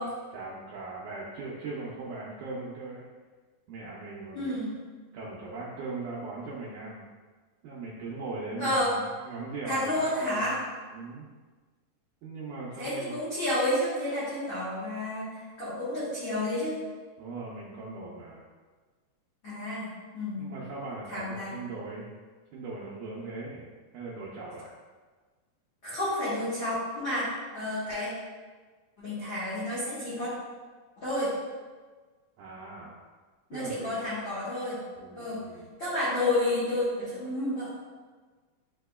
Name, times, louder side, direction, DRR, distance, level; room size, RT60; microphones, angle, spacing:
voice 1, 0.0-3.1 3.7-4.6 5.1-7.1 7.6-10.5 10.9-11.3 12.2-13.2 17.2-18.4 20.4-22.1 22.5-23.7 23.9-24.7 32.4-33.0 33.5-33.9 35.0-35.7, right 3 dB, 90° right, -6 dB, 1.8 m, -39 dB
voice 2, 4.3-4.8 8.6-8.9 9.7-10.5 12.8-16.8 19.4-20.5 21.1-21.5 25.8-28.1 29.0-30.3 31.0-31.3 33.5-34.8 35.1-35.4 35.8-37.7, left 1 dB, 85° left, -12 dB, 1.0 m, -30 dB
8.3 x 2.9 x 2.3 m, 1.4 s
omnidirectional pair, 4.2 m